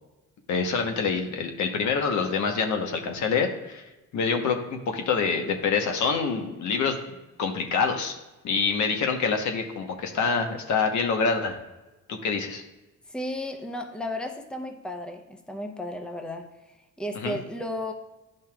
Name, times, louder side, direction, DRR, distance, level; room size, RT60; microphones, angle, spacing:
voice 1, 0.5-3.8 4.1-6.9 7.4-8.2 8.4-11.6 12.1-12.6 17.1-17.4, left 5 dB, 70° left, 4 dB, 1.1 m, -26 dB
voice 2, 13.1-16.5 17.0-17.9, left 1 dB, 5° left, 4 dB, 0.8 m, -34 dB
10.5 x 5.4 x 2.3 m, 1.1 s
cardioid pair, 90°, 30 cm